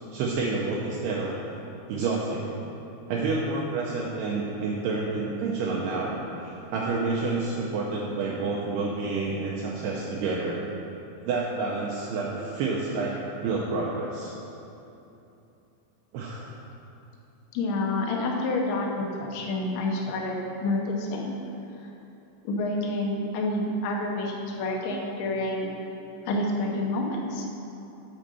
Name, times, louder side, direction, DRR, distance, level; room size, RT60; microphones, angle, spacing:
voice 1, 0.1-1.6 1.9-2.6 3.1-10.6 11.3-14.3 16.1-16.5 21.5-21.6 24.9-25.0, right 3 dB, 80° right, -4 dB, 2.4 m, -29 dB
voice 2, 17.5-21.3 22.4-25.7 26.2-27.5, left 2 dB, 75° left, -1 dB, 2.6 m, -28 dB
7.4 x 5.1 x 6.7 m, 2.9 s
omnidirectional pair, 5.3 m